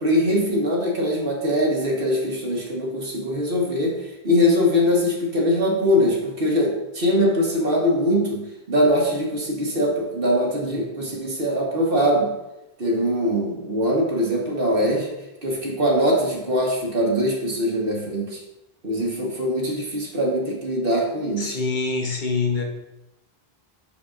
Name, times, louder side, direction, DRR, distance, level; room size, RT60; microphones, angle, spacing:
voice 1, 0.0-8.4 8.7-12.3 12.8-15.1 15.4-18.4 18.8-21.6, equal, 60° right, -1 dB, 1.5 m, -22 dB
voice 2, 21.4-22.6, left 4 dB, 50° left, 2 dB, 1.0 m, -25 dB
7.0 x 6.3 x 2.5 m, 0.93 s
omnidirectional pair, 1.0 m